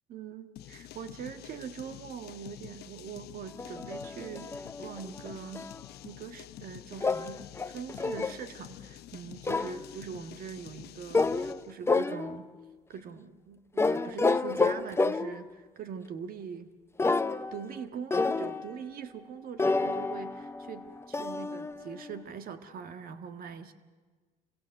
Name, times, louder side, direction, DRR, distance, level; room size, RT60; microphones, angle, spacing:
voice 1, 0.1-5.7 6.0-12.5 12.9-16.7 17.5-23.7, right 7 dB, 60° right, 9 dB, 1.7 m, -42 dB
sound 1, 0.6-11.7, left 14 dB, 75° left, 0.8 m, -48 dB
sound 2, 3.6-5.8 7.0-8.4 9.4-9.9 11.1-11.6 11.9-12.6 13.8-15.5 17.0-17.8 18.1-18.8 19.6-22.2, left 3 dB, 15° left, 0.7 m, -30 dB
29.0 x 24.0 x 6.6 m, 1.4 s
cardioid pair, 110°, 17 cm